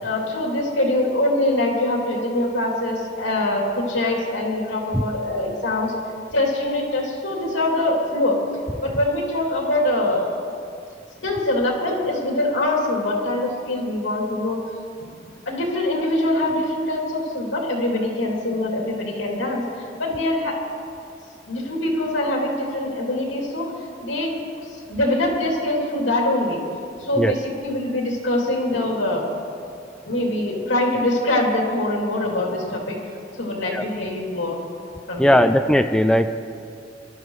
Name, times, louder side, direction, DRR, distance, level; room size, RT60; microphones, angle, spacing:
voice 1, 0.0-5.9 6.3-8.4 8.8-10.2 11.2-14.6 15.5-20.6 21.5-23.7 24.0-24.3 24.9-26.6 27.0-29.3 30.1-33.0 33.4-34.6 35.1-35.5, left 1 dB, 85° left, -2 dB, 2.9 m, -23 dB
voice 2, 35.2-36.4, equal, 5° left, 8 dB, 0.4 m, -18 dB
23.5 x 12.5 x 3.2 m, 2.4 s
head